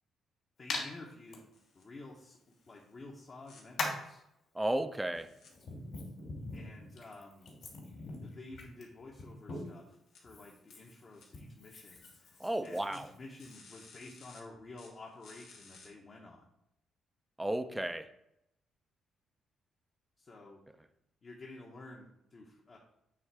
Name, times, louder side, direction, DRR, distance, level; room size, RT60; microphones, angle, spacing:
voice 1, 0.6-1.5 1.7-2.4 2.7-4.2 6.5-7.5 8.2-16.5 20.2-20.6 21.2-22.8, left 2 dB, 40° left, -1 dB, 1.2 m, -51 dB
Hands, 0.7-0.8 1.3-1.4 2.7-2.8 3.8-4.1 5.0-9.9 10.2-13.6, left 3 dB, 60° left, 2.8 m, -42 dB
sound 1, 1.3-1.8 2.2-2.8 3.4-3.6 5.1-5.5 9.9-10.2 10.7-11.2 12.6-13.0 13.4-14.4 14.8-15.9, left 4 dB, 85° left, 1.7 m, -57 dB
voice 2, 4.5-5.3 12.4-13.1 17.4-18.1, right 1 dB, 10° right, 10 dB, 0.5 m, -33 dB
8.6 x 3.3 x 4.7 m, 0.80 s
cardioid pair, 90°, 0 cm